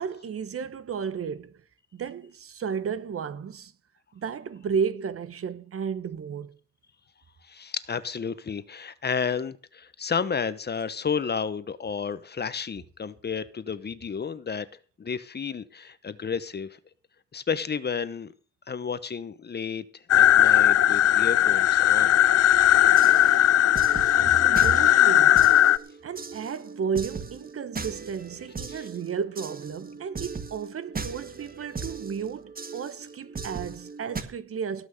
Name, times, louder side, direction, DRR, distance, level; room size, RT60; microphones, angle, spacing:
voice 1, 0.0-1.6 1.9-3.7 4.1-6.5 24.1-25.5 26.0-34.9, right 6 dB, 50° right, 1.2 m, -33 dB
voice 2, 7.4-14.7 15.0-16.8 17.3-18.3 18.7-22.2 28.7-28.9, left 6 dB, 35° left, 1.0 m, -32 dB
sound 1, 20.1-25.8, left 12 dB, 55° left, 0.6 m, -18 dB
sound 2, 22.7-34.2, right 4 dB, 30° right, 1.7 m, -39 dB
18.0 x 6.2 x 6.6 m
cardioid pair, 90°, 30 cm